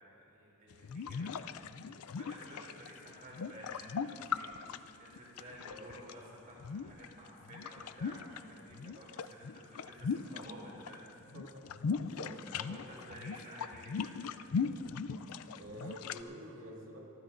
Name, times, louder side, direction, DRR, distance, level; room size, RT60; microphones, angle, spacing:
voice 1, 0.0-1.5 2.0-11.1 12.5-14.6, equal, 40° right, -4 dB, 2.9 m, -52 dB
sound 1, 0.7-6.1 6.6-8.4 8.7-11.0 11.2-16.2, left 6 dB, 80° left, 0.4 m, -39 dB
voice 2, 5.7-6.0 11.3-12.4 15.5-17.0, right 1 dB, 65° right, -2 dB, 2.3 m, -49 dB
24.5 x 14.5 x 2.6 m, 2.9 s
head